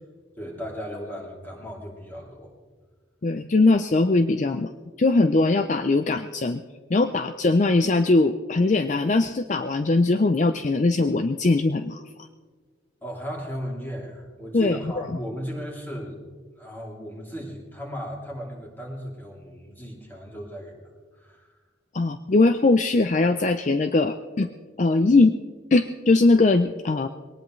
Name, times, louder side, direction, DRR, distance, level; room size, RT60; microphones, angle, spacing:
voice 1, 0.4-2.5 13.0-16.2 16.6-20.8 21.1-21.5, equal, 10° left, -2 dB, 2.9 m, -36 dB
voice 2, 3.2-4.7 5.0-6.6 6.9-12.0 14.5-14.8 21.9-24.5 24.8-25.4 25.7-27.1, left 3 dB, 40° left, 9 dB, 0.4 m, -20 dB
21.5 x 18.5 x 3.2 m, 1.5 s
head